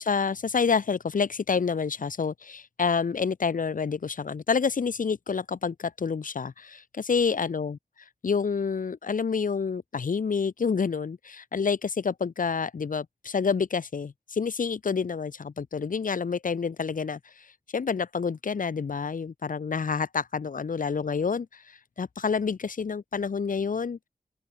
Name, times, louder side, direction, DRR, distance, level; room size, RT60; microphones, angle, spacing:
voice 1, 0.0-7.8 8.2-24.0, left 5 dB, 80° left, 1.7 m, -28 dB
open air
wide cardioid pair, 90°, 14 cm